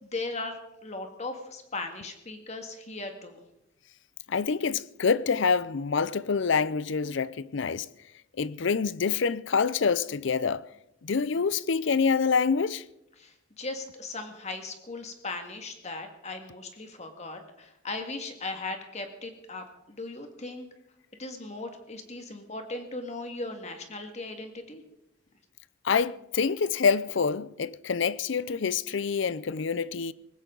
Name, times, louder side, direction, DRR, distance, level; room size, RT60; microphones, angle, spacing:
voice 1, 0.0-3.4 13.2-20.7 21.2-24.8, left 2 dB, 35° left, 1.9 m, -38 dB
voice 2, 4.3-7.9 8.4-10.6 11.0-12.8 25.8-30.1, left 5 dB, 60° left, 0.5 m, -26 dB
19.5 x 16.5 x 3.9 m
head